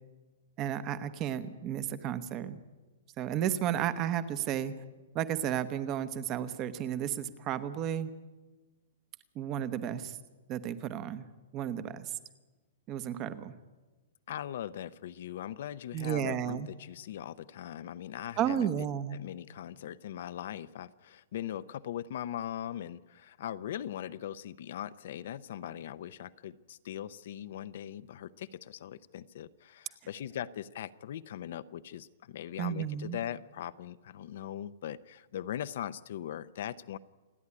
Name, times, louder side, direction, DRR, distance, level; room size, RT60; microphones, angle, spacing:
voice 1, 0.6-2.6 3.2-4.7 5.1-8.1 9.3-10.2 10.5-11.3 11.5-12.1 12.9-13.5 15.9-16.7 18.4-19.2 32.6-33.2, right 10 dB, 20° right, 12 dB, 0.9 m, -33 dB
voice 2, 14.3-18.9 19.1-37.0, left 10 dB, 50° left, 14 dB, 0.6 m, -40 dB
28.0 x 9.7 x 9.8 m, 1.2 s
hypercardioid pair, 175°, 0 cm